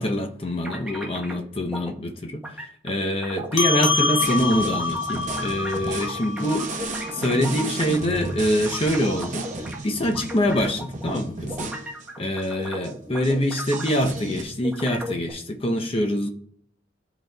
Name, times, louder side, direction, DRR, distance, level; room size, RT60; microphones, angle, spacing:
voice 1, 0.0-2.4 2.8-11.7 12.2-16.3, equal, 30° left, 0.6 m, -25 dB
sound 1, 0.6-1.4 1.7-1.9 2.4-3.7 4.0-9.8 10.1-14.3 14.6-15.3, equal, 5° right, 1.0 m, -36 dB
sound 2, 3.6-8.4, left 3 dB, 85° left, 0.7 m, -27 dB
sound 3, 4.2-12.1 12.4-12.5 12.8-12.9 13.2-14.4, right 3 dB, 40° right, 0.8 m, -34 dB
12.0 x 4.0 x 2.2 m
head